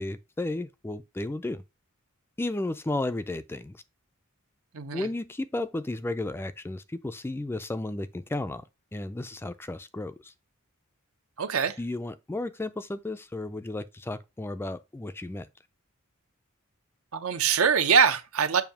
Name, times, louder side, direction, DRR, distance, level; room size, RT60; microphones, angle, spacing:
voice 1, 0.0-1.6 2.4-3.8 4.9-8.7 8.9-10.3 11.8-15.5, left 2 dB, 10° left, 0.3 m, -33 dB
voice 2, 4.7-5.1 11.4-11.8 17.1-18.6, right 6 dB, 75° right, 0.8 m, -23 dB
7.0 x 2.7 x 5.8 m
head